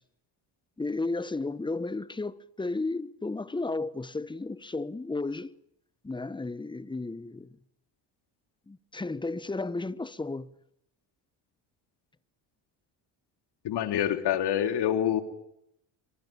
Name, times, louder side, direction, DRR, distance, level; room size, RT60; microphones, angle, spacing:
voice 1, 0.8-5.5 6.0-7.5 8.7-10.5, left 3 dB, 10° left, 1.1 m, -33 dB
voice 2, 13.6-15.2, left 10 dB, 65° left, 3.1 m, -26 dB
26.0 x 24.0 x 8.7 m
cardioid pair, 90°, 43 cm